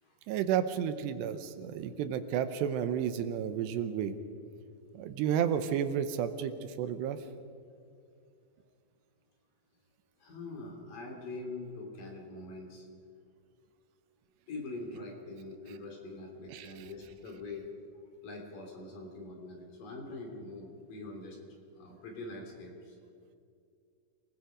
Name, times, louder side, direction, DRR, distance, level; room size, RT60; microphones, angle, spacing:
voice 1, 0.3-4.2 4.9-7.2 16.5-16.7, right 9 dB, 85° right, 10 dB, 3.2 m, -32 dB
voice 2, 10.2-12.9 14.5-17.7 18.2-21.4 21.7-23.0, left 2 dB, 55° left, 1 dB, 4.6 m, -43 dB
28.0 x 20.0 x 5.2 m, 2.3 s
omnidirectional pair, 4.8 m